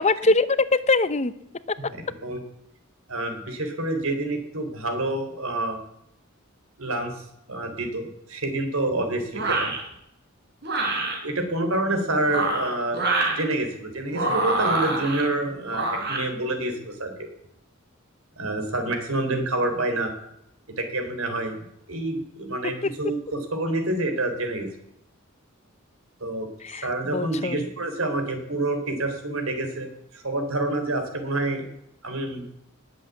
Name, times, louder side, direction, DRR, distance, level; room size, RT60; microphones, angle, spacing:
voice 1, 0.0-1.3 1.7-1.8 26.6-26.9 27.1-27.6, left 3 dB, 30° left, 15 dB, 0.7 m, -22 dB
voice 2, 1.8-2.4 3.1-5.8 6.8-9.7 11.2-13.0 13.4-17.3 18.4-20.1 20.8-21.6 21.9-24.7 26.2-26.5 26.8-29.9 30.1-31.7 32.0-32.4, right 2 dB, 80° right, 7 dB, 3.9 m, -27 dB
sound 1, 9.3-9.8 10.6-11.2 12.2-13.4 14.1-15.2 15.7-16.2, right 2 dB, 50° right, 4.9 m, -25 dB
20.0 x 8.0 x 8.4 m, 0.78 s
head